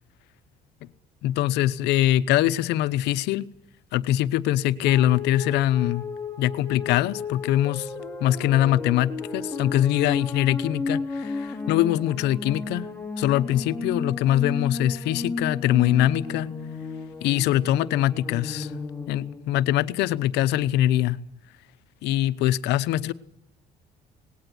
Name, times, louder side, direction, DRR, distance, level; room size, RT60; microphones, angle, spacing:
voice 1, 1.2-3.5 3.9-6.0 6.4-7.9 8.2-12.9 13.2-16.5 17.2-18.7 19.1-21.2 22.0-23.1, left 13 dB, 90° left, 0.9 m, -23 dB
sound 1, 4.8-19.8, left 4 dB, 10° left, 2.7 m, -33 dB
19.0 x 17.5 x 9.8 m
cardioid pair, 110°, 17 cm